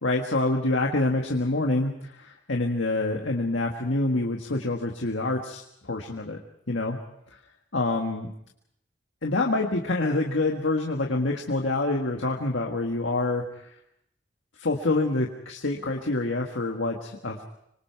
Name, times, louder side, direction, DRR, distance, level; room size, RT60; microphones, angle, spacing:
voice 1, 0.0-6.4 6.7-7.0 7.7-8.3 9.2-13.7 14.6-17.4, left 2 dB, 80° left, 1 dB, 1.7 m, -26 dB
26.0 x 24.5 x 4.7 m, 0.76 s
head